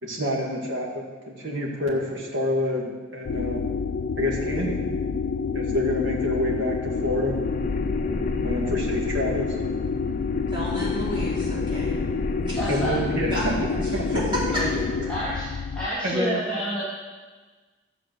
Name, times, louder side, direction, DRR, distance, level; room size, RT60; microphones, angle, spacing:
voice 1, 0.0-3.6 4.2-4.9 5.5-7.4 8.4-9.6 12.7-13.5 13.9-14.2 14.7-15.1 16.0-16.3, left 1 dB, 80° right, -2 dB, 1.9 m, -28 dB
sound 1, 3.3-15.9, left 5 dB, 70° left, 0.4 m, -28 dB
sound 2, 6.0-15.6, left 1 dB, 40° left, 0.9 m, -34 dB
voice 2, 10.5-12.0 12.4-12.8 13.3-13.5 14.1-14.6, equal, 25° right, -7 dB, 4.1 m, -31 dB
voice 3, 12.5-13.0 14.5-14.7 15.1-15.5 15.7-16.8, equal, 5° left, -10 dB, 2.0 m, -28 dB
12.5 x 7.2 x 6.7 m, 1.4 s
head